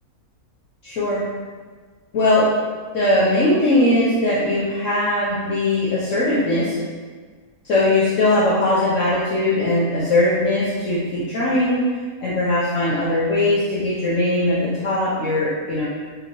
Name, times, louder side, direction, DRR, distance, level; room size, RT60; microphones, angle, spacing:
voice 1, 0.8-1.2 2.1-2.5 2.9-6.8 7.6-11.8 12.2-15.8, left 1 dB, 60° left, -8 dB, 1.1 m, -20 dB
5.3 x 2.9 x 3.0 m, 1.5 s
omnidirectional pair, 1.6 m